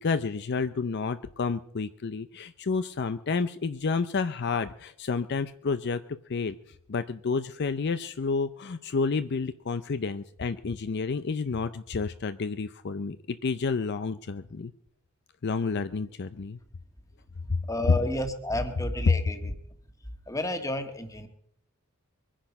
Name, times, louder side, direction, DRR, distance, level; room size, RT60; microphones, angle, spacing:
voice 1, 0.0-6.0 6.3-6.6 6.9-14.7 15.4-16.6, left 4 dB, 50° left, 11 dB, 0.5 m, -30 dB
voice 2, 17.7-19.5 20.3-21.3, left 1 dB, 15° left, 7 dB, 1.6 m, -31 dB
23.0 x 10.0 x 5.3 m, 0.70 s
head